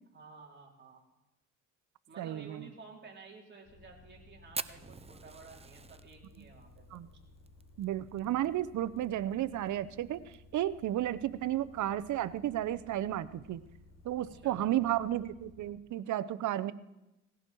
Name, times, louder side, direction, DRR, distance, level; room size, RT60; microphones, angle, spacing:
voice 1, 0.1-1.0 2.1-7.0 14.3-14.7, right 4 dB, 35° right, -1 dB, 4.2 m, -53 dB
voice 2, 2.2-2.7 6.9-7.1 7.8-10.2 10.5-13.6 14.0-16.7, right 12 dB, 75° right, 15 dB, 0.8 m, -33 dB
Bus, 3.6-15.7, left 2 dB, 55° left, 2.6 m, -58 dB
Fire, 4.5-9.1 9.3-9.4 9.7-9.8 10.1-10.6 11.1-11.2 12.2-12.4, right 5 dB, 20° right, 0.6 m, -44 dB
19.0 x 16.0 x 4.6 m, 0.93 s
cardioid pair, 90°, 30 cm